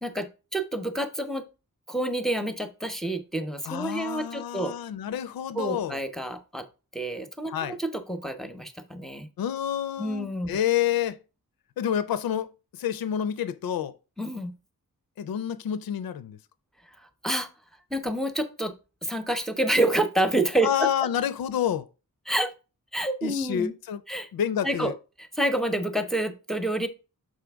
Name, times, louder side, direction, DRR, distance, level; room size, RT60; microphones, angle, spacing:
voice 1, 0.0-1.5 1.9-4.7 5.5-6.7 6.9-9.3 10.0-10.5 14.2-14.5 17.2-17.5 17.9-18.7 19.0-20.7 22.3-22.5 22.9-23.7 24.1-24.3 24.6-24.9 25.2-26.9, right 1 dB, ahead, 0.7 m, -28 dB
voice 2, 3.7-6.0 7.5-7.8 9.4-11.2 11.8-12.5 12.8-14.0 15.2-16.4 20.6-21.9 23.2-24.0 24.3-24.9, left 9 dB, 75° left, 0.5 m, -28 dB
6.5 x 5.0 x 3.4 m
wide cardioid pair, 155°, 35 cm